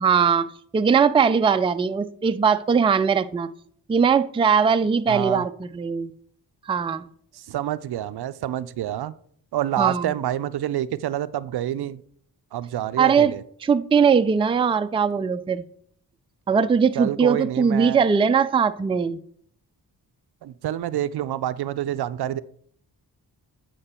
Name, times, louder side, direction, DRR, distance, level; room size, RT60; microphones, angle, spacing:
voice 1, 0.0-3.5 3.9-6.1 6.7-7.0 9.8-10.1 13.0-13.3 13.6-15.7 16.5-19.2, right 6 dB, 15° right, 0.4 m, -20 dB
voice 2, 5.1-5.4 7.3-9.1 9.5-12.0 12.5-13.4 17.0-18.0 20.4-22.4, right 12 dB, 65° right, 0.5 m, -27 dB
8.6 x 5.0 x 4.3 m
cardioid pair, 55°, 42 cm